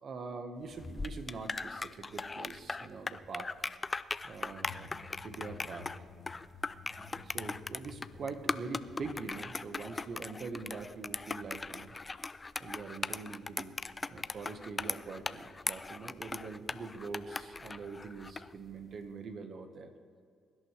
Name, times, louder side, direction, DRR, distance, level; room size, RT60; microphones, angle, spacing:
voice 1, 0.0-3.5 4.2-4.9 5.2-5.9 7.1-12.0 12.6-19.9, right 4 dB, 55° right, 7 dB, 1.4 m, -43 dB
sound 1, 0.7-18.5, left 3 dB, 25° left, 0.4 m, -39 dB
sound 2, 4.6-10.1, left 5 dB, 70° left, 1.6 m, -53 dB
23.0 x 11.0 x 3.4 m, 2.3 s
cardioid pair, 90°, 0 cm